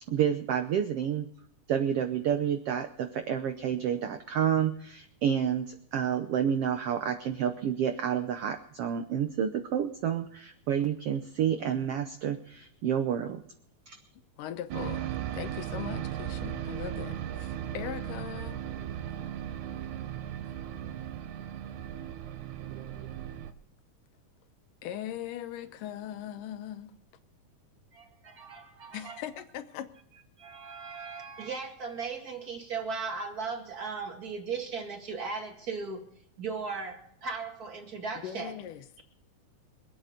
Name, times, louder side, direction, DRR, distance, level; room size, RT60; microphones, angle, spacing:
voice 1, 0.1-1.3 1.7-13.4 13.9-14.0, right 8 dB, 90° right, 1.3 m, -29 dB
voice 2, 14.4-15.1 15.3-18.6 24.8-26.9 28.9-29.9 38.2-39.0, left 11 dB, 80° left, 2.5 m, -40 dB
sound 1, 14.7-23.5, right 10 dB, 75° right, 2.2 m, -37 dB
voice 3, 27.9-29.2 30.4-36.0 36.4-38.5, right 5 dB, 30° right, 2.1 m, -37 dB
24.5 x 8.8 x 5.1 m
omnidirectional pair, 3.8 m